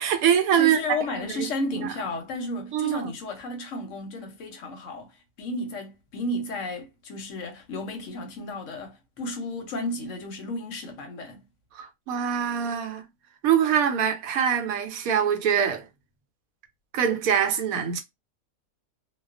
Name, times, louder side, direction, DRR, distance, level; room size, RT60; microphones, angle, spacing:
voice 1, 0.0-1.2 2.7-3.1 11.7-13.0 13.4-15.9 16.9-18.0, right 8 dB, 75° right, 1.0 m, -24 dB
voice 2, 0.6-11.5, left 2 dB, 65° left, 0.9 m, -33 dB
2.3 x 2.2 x 2.4 m
omnidirectional pair, 1.6 m